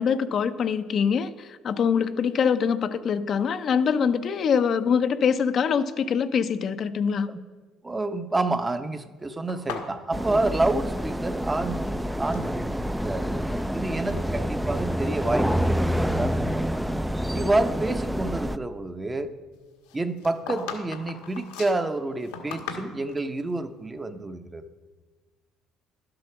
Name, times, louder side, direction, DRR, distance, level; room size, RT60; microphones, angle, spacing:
voice 1, 0.0-7.3, left 6 dB, 50° left, 10 dB, 0.6 m, -24 dB
voice 2, 7.8-13.4 13.7-16.7 17.3-19.3 19.9-24.7, right 2 dB, 20° right, 8 dB, 0.8 m, -29 dB
sound 1, 9.5-11.5 11.7-12.5 13.1-13.7 14.0-14.3 14.9-15.0 15.6-17.1 17.4-17.5 19.8-23.3, left 6 dB, 90° left, 1.4 m, -39 dB
sound 2, 10.1-18.6, equal, 5° right, 0.4 m, -27 dB
11.5 x 7.9 x 5.8 m, 1.4 s
supercardioid pair, 70°, 0 cm